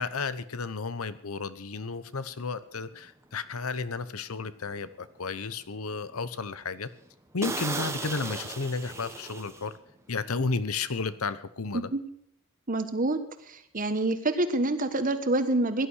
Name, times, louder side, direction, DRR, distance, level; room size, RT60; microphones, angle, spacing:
voice 1, 0.0-6.9 7.3-9.7 10.1-11.9, left 4 dB, 85° left, 15 dB, 0.9 m, -33 dB
sound 1, 2.2-2.3 2.8-3.1 3.6-3.7 4.0-4.1 4.6-5.2 5.6-5.7 6.1-6.2 6.5-6.6 7.0-7.1 7.4-10.0 10.2-10.4, right 3 dB, 15° right, 1.3 m, -36 dB
voice 2, 12.7-13.2 13.7-15.9, right 2 dB, 40° right, 10 dB, 1.4 m, -26 dB
17.0 x 11.5 x 6.4 m, 0.68 s
head